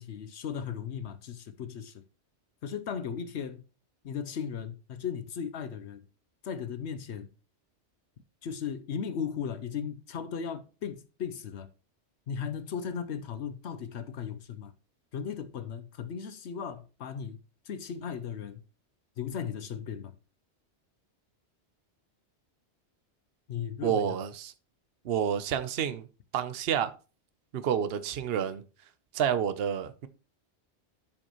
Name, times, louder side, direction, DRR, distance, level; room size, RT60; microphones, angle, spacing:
voice 1, 0.0-2.0 2.6-3.6 4.0-6.1 6.4-7.3 8.4-11.7 12.3-14.7 15.1-17.4 17.6-18.6 19.2-20.1 23.5-24.2, left 7 dB, 75° left, 1.0 m, -36 dB
voice 2, 23.8-24.5 25.0-26.1 26.3-26.9 27.5-28.6 29.1-30.1, right 8 dB, 65° right, 0.9 m, -29 dB
12.0 x 5.2 x 3.0 m
omnidirectional pair, 1.2 m